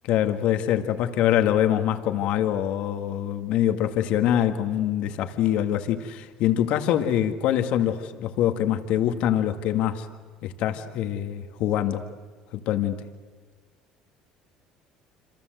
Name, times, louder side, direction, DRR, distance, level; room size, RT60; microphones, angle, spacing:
voice 1, 0.1-10.1 10.4-12.1 12.5-13.0, left 11 dB, 70° left, 7 dB, 1.9 m, -24 dB
28.0 x 26.5 x 7.9 m, 1.5 s
supercardioid pair, 80°, 2 cm